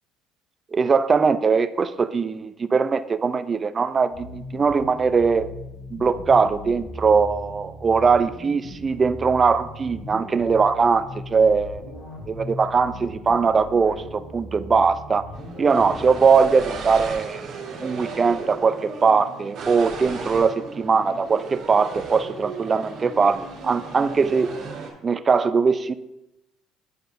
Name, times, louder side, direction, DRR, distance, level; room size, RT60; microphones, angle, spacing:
voice 1, 0.7-5.5 5.9-11.8 12.3-15.3 15.6-17.4 17.8-24.5 25.0-26.0, right 5 dB, 30° right, 13 dB, 0.4 m, -21 dB
sound 1, 4.1-16.4, left 1 dB, 65° left, 2.6 m, -39 dB
sound 2, 15.3-24.9, right 4 dB, 60° right, 2.0 m, -35 dB
10.5 x 4.6 x 2.6 m, 0.90 s
supercardioid pair, 90°, 0 cm